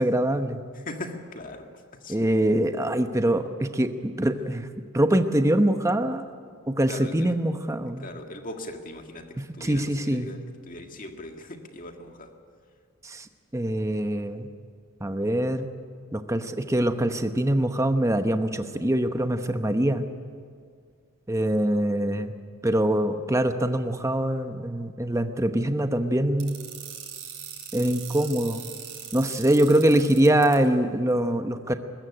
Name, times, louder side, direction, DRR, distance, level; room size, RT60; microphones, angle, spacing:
voice 1, 0.0-0.6 2.1-4.7 4.9-6.3 6.7-8.1 9.4-10.3 13.0-13.3 13.5-14.5 15.0-15.7 16.1-20.0 21.3-22.3 22.6-26.6 27.7-28.7 29.1-31.7, right 1 dB, 15° right, 8 dB, 0.9 m, -24 dB
voice 2, 0.7-2.2 6.9-7.4 8.0-12.3, left 1 dB, 40° left, 4 dB, 1.8 m, -40 dB
sound 1, 26.4-30.5, right 9 dB, 55° right, 5.5 m, -39 dB
21.0 x 14.5 x 10.0 m, 2.1 s
head